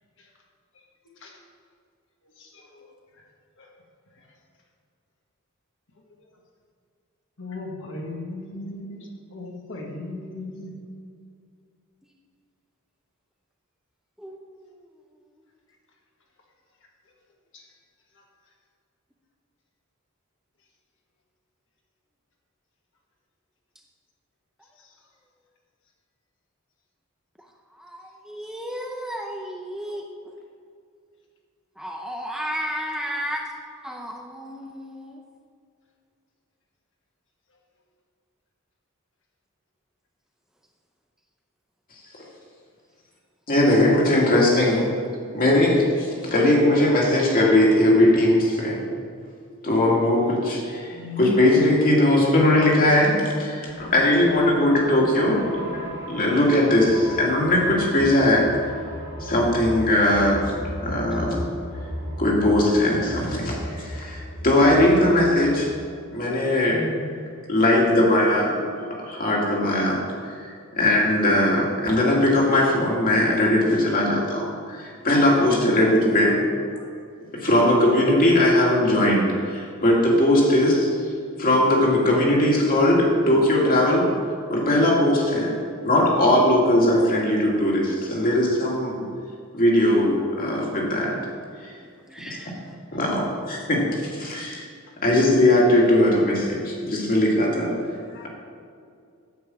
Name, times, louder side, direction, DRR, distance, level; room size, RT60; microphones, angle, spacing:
voice 1, 2.4-3.3 3.6-3.7 4.1-4.3 5.9-6.3 7.4-10.7 16.8-16.9 17.5-17.7 18.1-18.2 24.8-24.9 50.9-51.4 66.7-67.1 75.2-76.4 92.9-93.0 98.1-98.3, left 2 dB, 60° left, 0 dB, 1.7 m, -38 dB
voice 2, 28.3-30.0 31.8-35.1 65.4-65.5 84.9-85.0 92.1-92.5, equal, 5° right, 0 dB, 0.6 m, -33 dB
voice 3, 43.5-44.9 45.3-48.9 49.6-55.8 56.1-58.5 59.2-60.5 60.8-61.5 62.2-65.7 66.1-66.8 67.5-76.5 77.3-81.0 81.4-84.2 84.5-89.0 89.5-91.3 91.6-91.7 92.3-92.4 92.9-94.6 95.0-97.8, left 1 dB, 40° left, -3 dB, 2.3 m, -20 dB
sound 1, 53.7-65.9, equal, 55° right, 2.8 m, -35 dB
9.5 x 5.5 x 7.6 m, 2.3 s
head